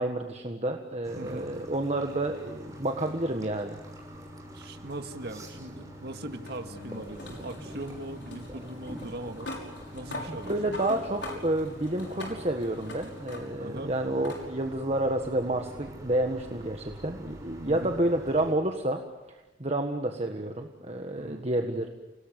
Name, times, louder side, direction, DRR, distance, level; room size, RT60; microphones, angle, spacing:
voice 1, 0.0-3.8 10.3-19.0 19.3-21.9, right 1 dB, 30° right, 4 dB, 1.6 m, -30 dB
sound 1, 1.0-18.5, equal, 15° right, 6.7 m, -45 dB
voice 2, 1.2-1.5 4.5-9.5 9.9-10.8 13.6-13.9 17.7-18.0 21.2-21.5, right 1 dB, 55° right, 6 dB, 2.1 m, -40 dB
sound 2, 4.9-13.8 14.2-14.4 15.8-15.9 18.8-18.9, left 1 dB, 60° left, 5.9 m, -43 dB
29.5 x 19.0 x 9.4 m, 1.1 s
head